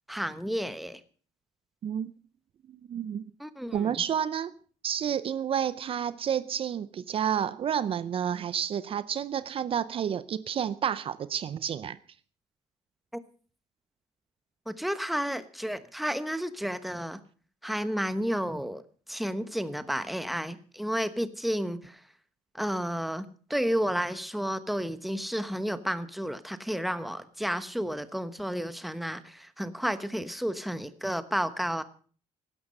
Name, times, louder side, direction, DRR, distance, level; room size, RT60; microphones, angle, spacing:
voice 1, 0.1-1.0 3.4-4.0 14.7-17.2 17.6-18.8 19.1-22.0 22.5-23.2 23.5-31.8, equal, ahead, 1.0 m, -31 dB
voice 2, 2.7-3.2 3.7-4.5 4.8-12.0, right 8 dB, 45° right, 0.6 m, -30 dB
16.5 x 12.0 x 5.4 m
cardioid pair, 125°, 13 cm